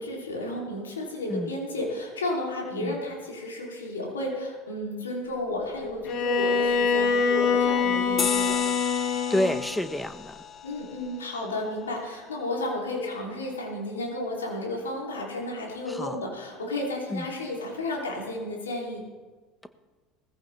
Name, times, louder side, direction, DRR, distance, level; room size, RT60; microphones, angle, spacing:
voice 1, 0.0-8.6 10.6-19.0, left 1 dB, 90° left, -2 dB, 3.1 m, -32 dB
Bowed string instrument, 6.1-9.8, left 5 dB, 55° left, 1.7 m, -24 dB
sound 1, 8.2-13.1, left 7 dB, 35° left, 0.9 m, -36 dB
voice 2, 9.3-10.3 15.9-16.2 17.1-17.3, left 1 dB, 5° left, 10 dB, 1.2 m, -29 dB
19.5 x 15.0 x 3.4 m, 1.4 s
hypercardioid pair, 70°, 0 cm